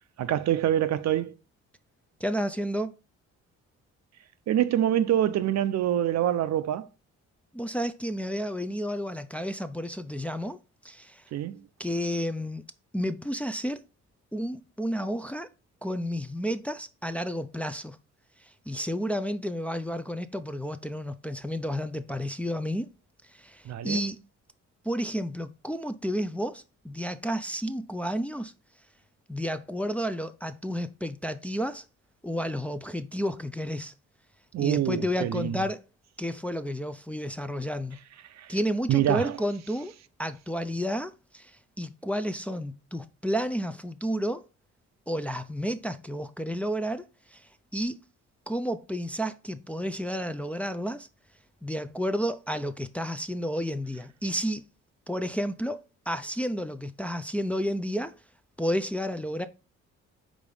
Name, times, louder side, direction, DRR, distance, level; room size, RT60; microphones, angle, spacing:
voice 1, 0.2-1.3 4.5-6.9 11.3-11.6 23.6-24.0 34.5-35.6 38.3-38.5 38.9-39.4, right 11 dB, 60° right, 0.6 m, -25 dB
voice 2, 2.2-2.9 7.5-10.6 10.8-11.2 11.8-12.6 12.9-13.8 14.3-15.5 15.8-18.0 18.4-22.9 23.3-24.2 24.8-28.5 29.3-31.8 32.2-33.9 34.6-35.8 36.2-38.0 38.5-39.9 40.2-44.4 45.1-47.0 47.3-48.0 48.5-51.1 51.6-54.7 55.1-58.2 58.6-59.5, equal, 5° left, 0.4 m, -31 dB
5.0 x 3.9 x 5.4 m
cardioid pair, 90°, 30 cm